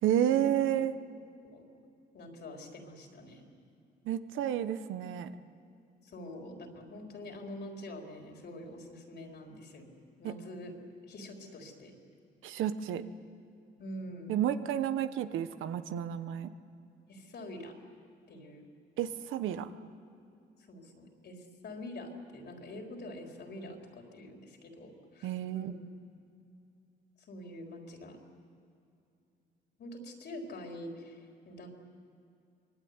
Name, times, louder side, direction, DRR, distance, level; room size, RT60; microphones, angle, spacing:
voice 1, 0.0-0.9 4.0-5.3 10.2-10.4 12.4-13.0 14.3-16.5 19.0-19.7 25.2-25.7, right 10 dB, 85° right, 11 dB, 1.1 m, -31 dB
voice 2, 2.1-3.4 6.0-9.9 10.2-10.7 11.1-11.9 13.8-14.4 17.1-17.7 18.3-18.7 20.7-25.7 27.2-28.2 29.8-31.7, left 1 dB, 60° left, 2 dB, 4.3 m, -45 dB
25.0 x 21.5 x 9.8 m, 2.6 s
cardioid pair, 90°, 20 cm